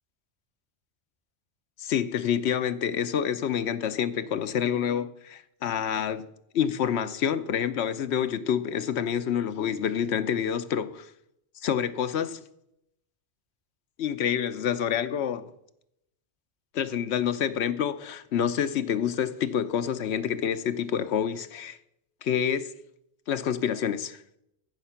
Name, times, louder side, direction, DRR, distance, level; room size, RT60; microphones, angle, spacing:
voice 1, 1.8-6.3 6.5-10.9 11.6-12.4 14.0-15.5 16.7-21.8 22.2-22.7 23.3-24.2, left 8 dB, 90° left, 1.0 m, -27 dB
15.0 x 5.9 x 5.7 m
omnidirectional pair, 1.1 m